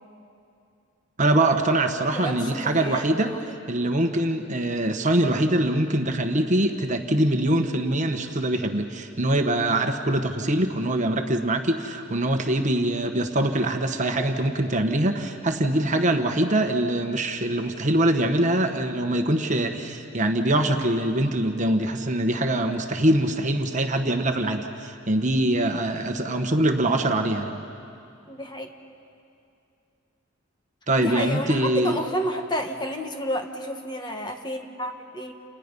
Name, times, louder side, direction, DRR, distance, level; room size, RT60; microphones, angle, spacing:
voice 1, 1.2-3.4 3.7-27.6 30.9-32.0, right 1 dB, 35° right, 4 dB, 1.3 m, -23 dB
voice 2, 2.2-3.4 28.3-28.7 31.0-35.3, equal, 20° left, 4 dB, 1.5 m, -31 dB
29.5 x 29.5 x 5.4 m, 2.6 s
head